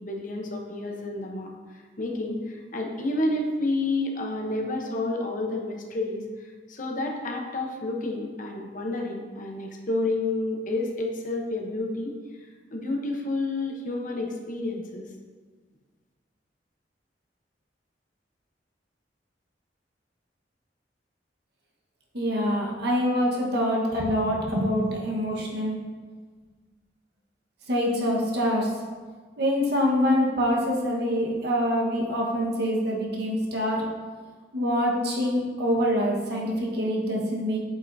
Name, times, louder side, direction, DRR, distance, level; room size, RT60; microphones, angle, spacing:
voice 1, 0.0-1.5 2.0-6.2 6.7-12.1 12.7-15.1, left 2 dB, 50° left, 1 dB, 0.8 m, -30 dB
voice 2, 22.1-25.8 27.7-28.7 29.4-33.9 34.5-37.6, equal, 65° right, -2 dB, 1.3 m, -25 dB
7.8 x 5.6 x 2.7 m, 1.5 s
head